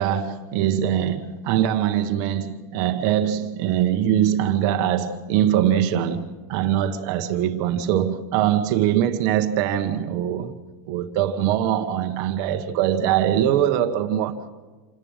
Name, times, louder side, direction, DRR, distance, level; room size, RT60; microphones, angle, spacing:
voice 1, 0.0-10.6 10.9-14.5, right 10 dB, 35° right, 1.2 m, -22 dB
28.5 x 11.0 x 9.0 m
supercardioid pair, 170°, 11 cm